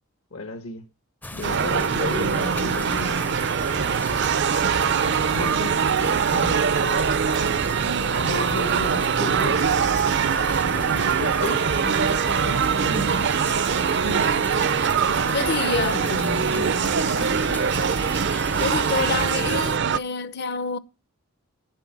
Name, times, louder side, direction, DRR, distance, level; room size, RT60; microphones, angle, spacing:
voice 1, 0.3-0.9 1.3-3.4 4.7-7.0 7.7-10.0 10.6-13.4 15.3-17.6, left 3 dB, 70° left, 1.3 m, -35 dB
sound 1, 1.2-19.8, left 1 dB, 10° left, 0.5 m, -37 dB
sound 2, 1.4-20.0, right 6 dB, 55° right, 0.5 m, -23 dB
voice 2, 12.9-13.3 14.0-14.4 15.3-16.0 18.6-20.8, left 4 dB, 50° left, 0.8 m, -28 dB
11.0 x 9.7 x 5.9 m
head